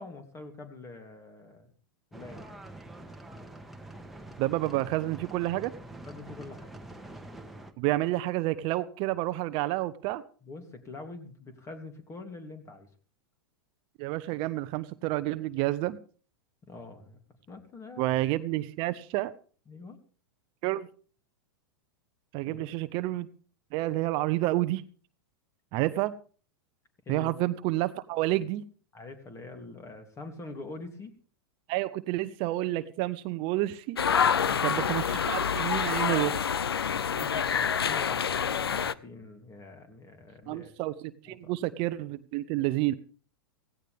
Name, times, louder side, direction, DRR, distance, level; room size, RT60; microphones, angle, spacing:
voice 1, 0.0-1.7 2.1-2.6 6.0-6.7 10.4-12.9 16.7-17.2 17.5-18.2 19.7-20.0 22.5-22.7 27.0-27.3 28.9-31.1 34.2-34.9 36.9-40.7 41.3-41.5, left 3 dB, 25° left, 6 dB, 3.1 m, -45 dB
sound 1, 2.1-7.7, right 1 dB, ahead, 1.8 m, -45 dB
voice 2, 4.4-5.7 7.8-10.2 14.0-16.0 18.0-19.3 20.6-20.9 22.3-23.3 23.7-24.8 25.7-26.1 27.1-28.6 31.7-34.0 34.6-36.5 40.5-43.0, right 17 dB, 45° right, 13 dB, 0.8 m, -29 dB
sound 2, 34.0-38.9, left 7 dB, 90° left, 0.6 m, -27 dB
16.5 x 16.5 x 3.6 m, 0.41 s
hypercardioid pair, 105°, 13 cm